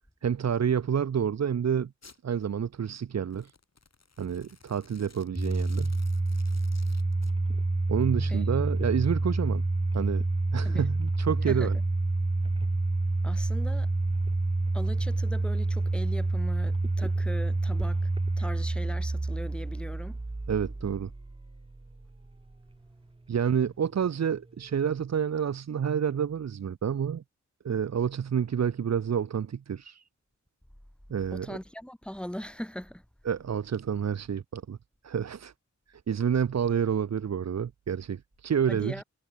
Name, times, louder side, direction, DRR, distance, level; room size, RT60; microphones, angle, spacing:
voice 1, 0.2-1.9 2.2-3.5 4.2-6.0 7.9-9.6 9.9-10.2 10.5-11.8 20.5-21.1 23.3-27.2 27.6-30.1 31.1-31.6 33.3-34.8 35.0-35.5 35.9-39.0, right 8 dB, 65° right, 0.7 m, -29 dB
Domestic sounds home sounds, 2.0-2.2 3.2-7.3, left 4 dB, 65° left, 6.4 m, -56 dB
Domestic sounds home sounds 2, 5.4-22.3, right 2 dB, 20° right, 1.0 m, -28 dB
voice 2, 11.4-11.8 13.2-13.9 14.7-18.1 18.4-20.2 31.3-33.0 38.7-39.0, equal, 5° left, 5.5 m, -39 dB
wide cardioid pair, 65°, 29 cm